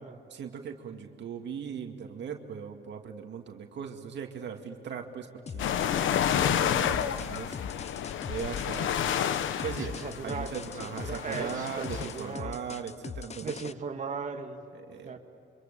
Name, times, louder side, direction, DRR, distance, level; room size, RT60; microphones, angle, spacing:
voice 1, 0.3-7.6 7.9-8.0 8.2-9.0 9.6-13.5 14.8-15.1, right 7 dB, 65° right, 3 dB, 2.2 m, -39 dB
sound 1, 5.5-13.7, left 6 dB, 35° left, 0.7 m, -41 dB
sound 2, 5.6-12.2, left 9 dB, 75° left, 1.2 m, -30 dB
voice 2, 9.8-10.6 10.8-12.6 13.4-14.7 15.0-15.2, right 5 dB, 40° right, 3 dB, 2.1 m, -38 dB
27.0 x 25.5 x 6.9 m, 2.6 s
cardioid pair, 90°, 20 cm